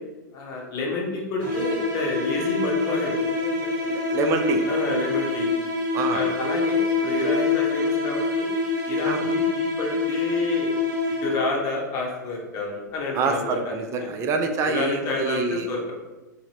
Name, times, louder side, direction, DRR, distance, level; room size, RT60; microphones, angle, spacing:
voice 1, 0.3-3.5 4.7-5.5 6.1-8.5 8.9-10.7 11.2-13.7 14.0-14.1 14.7-15.9, left 2 dB, 35° left, -2 dB, 0.9 m, -29 dB
sound 1, 1.4-11.6, left 3 dB, 80° right, 0.9 m, -25 dB
voice 2, 3.8-4.7 5.9-6.3 9.0-9.3 13.1-15.9, right 4 dB, 25° right, 5 dB, 0.3 m, -26 dB
2.7 x 2.7 x 2.9 m, 1.1 s
hypercardioid pair, 110°, 10 cm